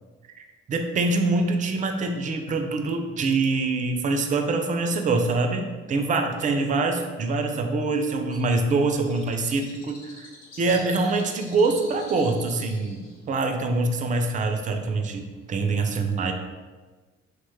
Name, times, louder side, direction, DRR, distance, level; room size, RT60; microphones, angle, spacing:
voice 1, 0.4-10.3 10.6-16.3, right 3 dB, 25° right, 5 dB, 0.3 m, -25 dB
Bird, 8.3-15.5, left 2 dB, 70° left, 0.7 m, -48 dB
2.9 x 2.2 x 3.1 m, 1.4 s
hypercardioid pair, 45°, 36 cm